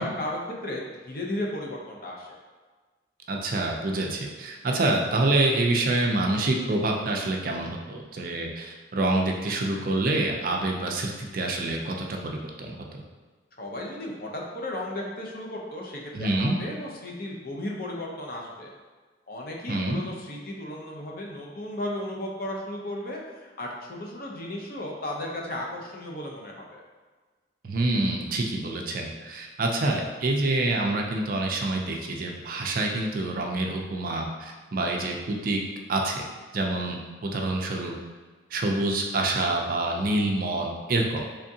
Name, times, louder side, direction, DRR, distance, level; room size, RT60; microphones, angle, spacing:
voice 1, 0.0-2.4 13.6-18.7 19.3-26.8, left 1 dB, 50° left, -1 dB, 0.6 m, -35 dB
voice 2, 3.3-13.0 16.1-16.5 19.7-20.0 27.6-35.6 35.9-36.2 36.5-37.9 38.5-41.2, right 2 dB, 45° right, 1 dB, 0.4 m, -27 dB
3.5 x 3.5 x 2.7 m, 1.4 s
head